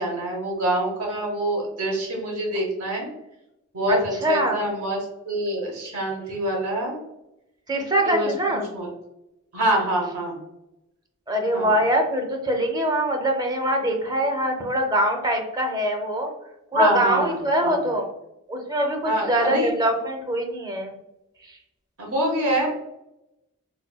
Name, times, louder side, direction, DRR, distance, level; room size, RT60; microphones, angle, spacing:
voice 1, 0.0-3.1 3.7-5.0 5.2-7.0 8.0-8.9 9.5-10.3 11.5-11.7 16.7-17.4 17.6-17.8 19.0-19.7 22.0-22.7, right 1 dB, 85° right, -1 dB, 1.0 m, -25 dB
voice 2, 3.9-4.6 7.7-8.6 11.3-16.3 16.7-18.1 18.5-20.9 21.5-21.6, right 1 dB, 20° right, 2 dB, 0.5 m, -23 dB
4.1 x 2.2 x 2.3 m, 0.88 s
head